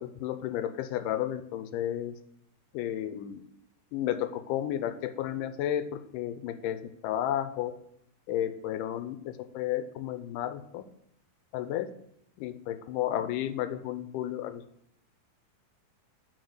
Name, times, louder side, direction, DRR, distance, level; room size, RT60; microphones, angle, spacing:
voice 1, 0.0-2.2 2.7-3.4 3.9-7.7 8.3-10.8 11.5-11.9 12.4-14.6, left 11 dB, 85° left, 11 dB, 2.2 m, -32 dB
8.0 x 4.6 x 6.5 m, 0.76 s
omnidirectional pair, 3.8 m